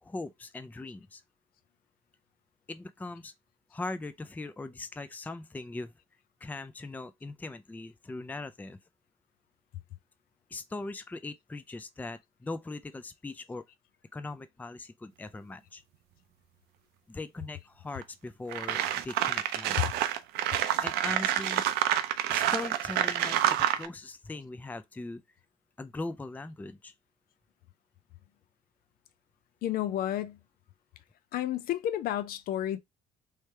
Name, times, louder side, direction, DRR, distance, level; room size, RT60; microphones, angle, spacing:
voice 1, 0.0-1.2 2.7-3.3 3.7-5.9 6.4-8.8 10.5-13.6 14.1-15.8 17.1-19.9 20.8-21.6 22.3-25.2 25.8-26.9, left 2 dB, 10° left, 0.4 m, -40 dB
sound 1, 18.0-18.1 18.5-23.9, right 12 dB, 70° right, 0.5 m, -28 dB
voice 2, 29.6-30.4 31.3-32.8, left 12 dB, 60° left, 0.5 m, -30 dB
3.2 x 3.2 x 3.2 m
hypercardioid pair, 65°, 17 cm